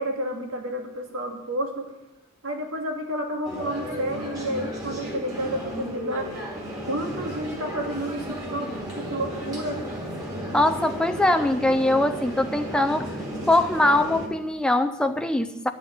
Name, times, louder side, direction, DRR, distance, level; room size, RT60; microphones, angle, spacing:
voice 1, 0.0-1.9 2.4-6.3 6.8-8.7 9.0-9.9, right 1 dB, 85° right, 2 dB, 2.0 m, -30 dB
sound 1, 3.4-14.3, equal, 15° right, 2.6 m, -34 dB
voice 2, 10.5-13.1 13.5-15.7, left 1 dB, 5° left, 8 dB, 0.4 m, -22 dB
11.0 x 6.2 x 8.7 m, 1.0 s
head